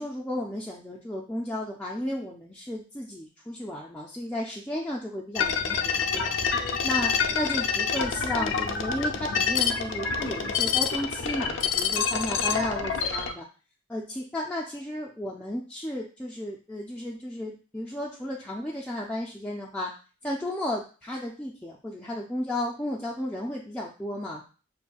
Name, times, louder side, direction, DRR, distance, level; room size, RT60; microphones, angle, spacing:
voice 1, 0.0-6.4 6.8-13.5 13.9-19.9 20.2-24.4, left 1 dB, 5° left, -3 dB, 0.3 m, -33 dB
sound 1, 5.4-13.3, left 6 dB, 70° left, 0.5 m, -27 dB
6.7 x 2.6 x 2.3 m, 0.36 s
head